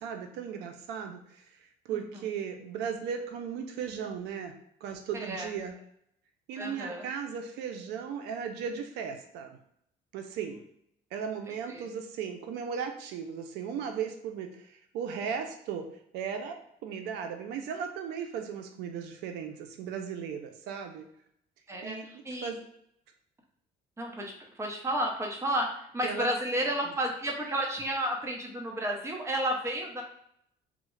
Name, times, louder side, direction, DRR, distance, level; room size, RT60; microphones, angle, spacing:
voice 1, 0.0-4.5 4.8-5.7 6.5-9.5 10.1-10.6 11.1-15.9 16.1-21.1 21.8-22.6 26.0-26.3, right 7 dB, 85° right, 5 dB, 0.4 m, -36 dB
voice 2, 6.6-7.1 11.7-11.9 21.7-22.5 24.0-24.3 24.6-30.0, right 1 dB, 15° right, 1 dB, 0.7 m, -32 dB
3.6 x 2.1 x 3.1 m, 0.72 s
cardioid pair, 110°, 17 cm